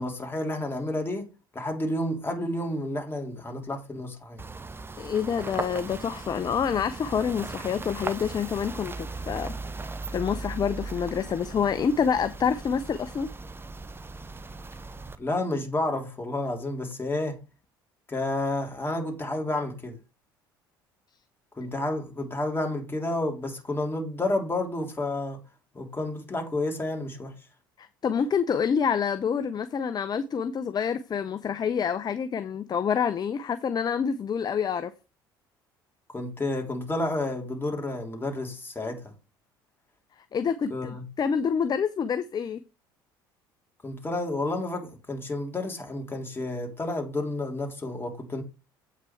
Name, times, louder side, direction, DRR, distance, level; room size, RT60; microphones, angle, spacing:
voice 1, 0.0-4.4 15.2-17.4 18.1-20.0 21.6-25.4 25.7-27.4 36.1-39.1 40.7-41.0 43.8-48.4, left 2 dB, 20° left, 3.4 m, -30 dB
sound 1, 4.4-15.2, right 3 dB, 20° right, 1.0 m, -38 dB
voice 2, 5.0-9.5 10.1-13.3 27.8-34.9 40.3-42.6, left 7 dB, 35° left, 0.7 m, -27 dB
8.4 x 5.9 x 4.6 m
hypercardioid pair, 65°, 11 cm